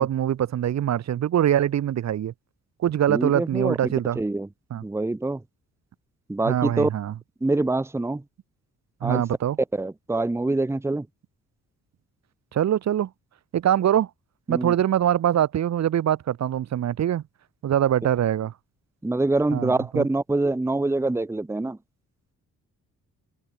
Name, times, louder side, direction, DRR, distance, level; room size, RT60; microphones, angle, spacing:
voice 1, 0.0-2.3 2.8-4.2 4.7-4.8 6.5-7.1 9.0-9.6 12.5-13.1 13.5-14.1 14.5-17.2 17.6-18.5 19.5-20.1, right 10 dB, 60° right, 1.7 m, -23 dB
voice 2, 3.1-4.5 4.8-5.4 6.3-6.9 7.4-8.2 9.0-9.2 9.7-11.1 14.5-14.7 19.0-21.8, right 2 dB, 10° right, 1.0 m, -25 dB
cardioid pair, 90°, 30 cm